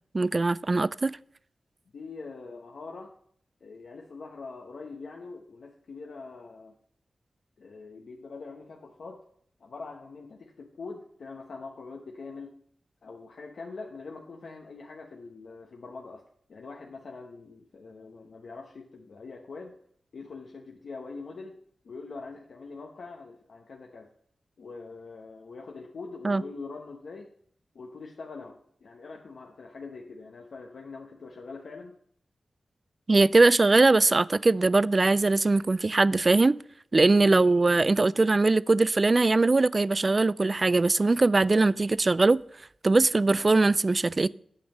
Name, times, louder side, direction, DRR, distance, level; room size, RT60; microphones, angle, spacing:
voice 1, 0.1-1.2 26.2-26.4 33.1-36.5 36.9-42.4 42.8-44.3, right 3 dB, 40° right, 0.3 m, -21 dB
voice 2, 1.9-3.1 3.6-6.7 7.6-9.2 9.6-12.5 13.0-16.2 16.5-19.7 20.1-21.6 21.8-24.1 24.6-27.3 27.7-31.9, left 4 dB, 80° left, 1.0 m, -43 dB
8.6 x 5.3 x 7.0 m
cardioid pair, 55°, 0 cm